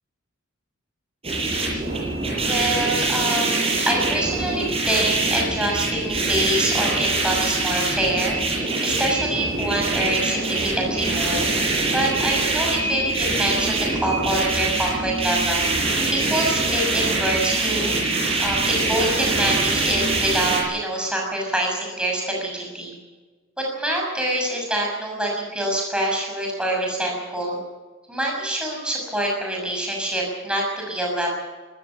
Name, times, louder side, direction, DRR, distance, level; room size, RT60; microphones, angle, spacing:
sound 1, 1.2-20.6, right 3 dB, 30° right, 7.4 m, -23 dB
voice 1, 2.4-8.4 8.8-11.5 11.9-15.7 16.1-18.0 18.4-22.9 23.6-27.6 28.1-31.3, right 1 dB, 5° right, -1 dB, 6.5 m, -25 dB
25.5 x 14.5 x 8.3 m, 1.3 s
head